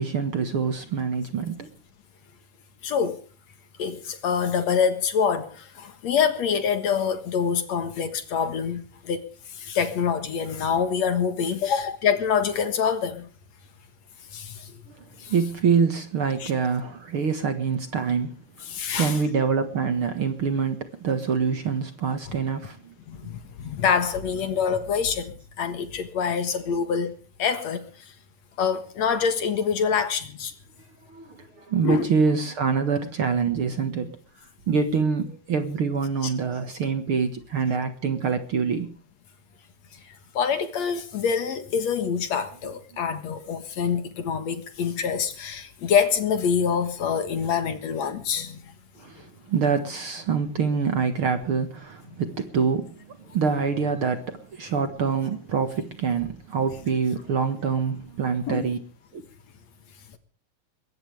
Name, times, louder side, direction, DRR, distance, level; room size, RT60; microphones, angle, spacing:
voice 1, 0.0-1.7 14.9-15.0 15.3-18.4 18.9-22.9 31.1-34.2 34.7-38.9 49.0-58.8 59.1-59.2, right 5 dB, 50° right, 2.0 m, -25 dB
voice 2, 2.8-3.2 3.8-13.3 14.3-14.7 15.2-15.3 16.4-16.5 18.7-19.2 23.1-27.1 27.4-27.9 28.6-30.5 31.8-32.1 36.2-36.3 40.1-48.7 58.5-58.6, left 7 dB, 60° left, 2.6 m, -26 dB
22.0 x 18.0 x 3.4 m
omnidirectional pair, 3.8 m